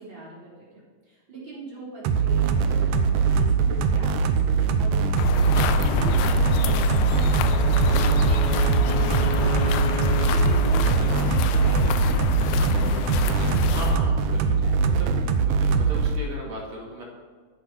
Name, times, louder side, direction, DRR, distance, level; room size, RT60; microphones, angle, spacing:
voice 1, 0.0-14.1 14.5-14.8, right 3 dB, 40° right, -7 dB, 4.5 m, -41 dB
sound 1, 2.0-16.2, right 5 dB, 85° right, 2.4 m, -22 dB
sound 2, 5.2-14.0, left 9 dB, 85° left, 2.1 m, -27 dB
Wind instrument woodwind instrument, 7.3-11.5, left 1 dB, 5° left, 0.4 m, -34 dB
voice 2, 10.8-11.1 13.7-15.1 15.4-17.0, right 1 dB, 60° right, -2 dB, 3.7 m, -37 dB
13.0 x 8.4 x 5.6 m, 1.5 s
omnidirectional pair, 3.5 m